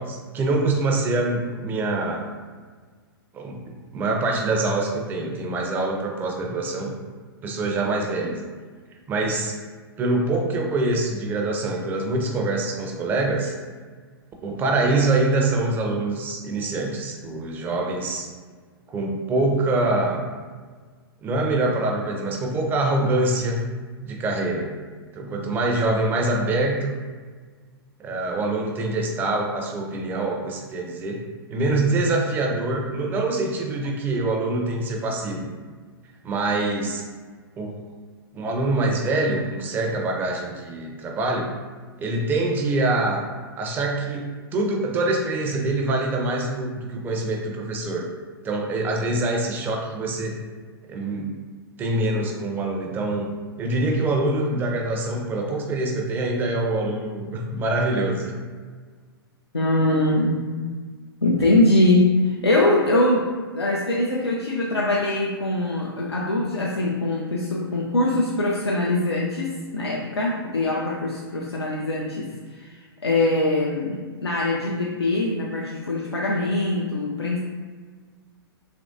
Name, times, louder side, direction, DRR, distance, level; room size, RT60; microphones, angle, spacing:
voice 1, 0.0-2.3 3.3-6.9 7.4-8.4 9.1-9.6 10.0-13.5 14.4-18.3 18.9-20.2 21.2-23.6 24.0-24.7 25.1-26.9 28.0-31.2 31.5-35.5 36.2-37.0 37.6-37.8 38.3-41.5 42.0-43.2 43.6-48.1 48.4-50.4 50.9-51.3 51.8-53.3 53.6-58.3, right 2 dB, 15° right, 1 dB, 0.4 m, -25 dB
voice 2, 59.5-60.4 61.2-77.4, left 2 dB, 85° left, -3 dB, 0.4 m, -22 dB
3.0 x 2.5 x 2.5 m, 1.5 s
figure-of-eight pair, 110°, 13 cm